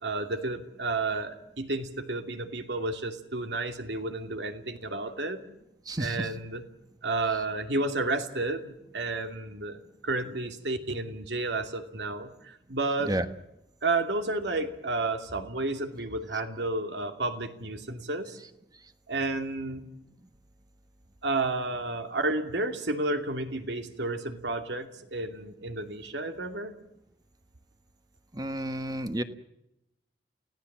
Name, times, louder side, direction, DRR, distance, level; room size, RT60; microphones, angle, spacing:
voice 1, 0.0-5.5 6.0-6.6 7.0-13.1 13.8-18.4 19.1-19.8 21.2-26.7, right 2 dB, 75° right, 6 dB, 2.6 m, -31 dB
voice 2, 5.9-6.3 13.1-13.2 28.3-29.2, right 1 dB, 20° right, 10 dB, 1.3 m, -31 dB
29.0 x 17.5 x 7.4 m, 0.85 s
head